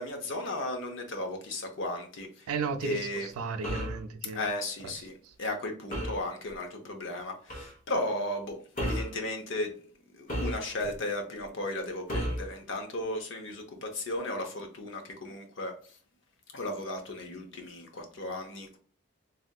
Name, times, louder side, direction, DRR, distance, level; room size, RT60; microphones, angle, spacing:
voice 1, 0.0-2.5 2.8-3.3 4.3-5.1 5.4-9.7 10.1-16.0 16.5-18.8, left 1 dB, 55° left, 0.7 m, -35 dB
voice 2, 2.5-4.4 4.8-4.9, right 5 dB, 90° right, 0.4 m, -34 dB
sound 1, 3.6-4.0 5.9-6.3 7.5-7.7 8.8-9.2 10.3-10.9 12.1-12.5, equal, 40° left, 1.0 m, -33 dB
3.3 x 2.6 x 2.3 m
head